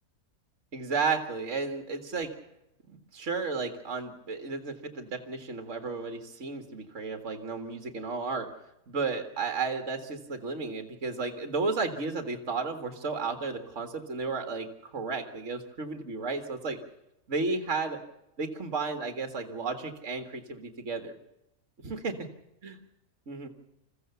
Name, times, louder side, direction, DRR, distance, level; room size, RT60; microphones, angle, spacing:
voice 1, 0.7-2.3 2.9-8.5 8.9-16.8 17.3-18.0 18.4-21.2 21.8-22.1 22.6-22.8 23.3-23.5, right 4 dB, 55° right, 6 dB, 2.2 m, -33 dB
28.0 x 15.0 x 7.0 m, 0.87 s
omnidirectional pair, 1.5 m